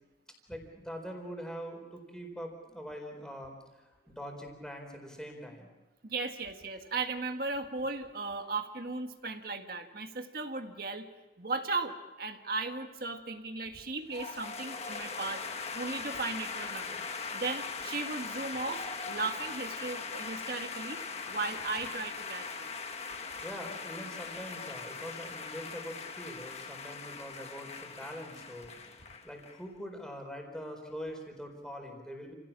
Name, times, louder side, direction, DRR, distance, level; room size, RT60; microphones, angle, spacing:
voice 1, 0.5-5.7 23.4-32.3, equal, 5° left, 2 dB, 4.3 m, -43 dB
voice 2, 6.0-11.1 11.4-15.4 15.7-17.1 17.3-21.0 21.3-22.7, right 3 dB, 55° right, 5 dB, 1.8 m, -36 dB
sound 1, 14.1-29.6, left 5 dB, 35° left, 1.4 m, -40 dB
29.5 x 17.0 x 7.4 m, 1.1 s
head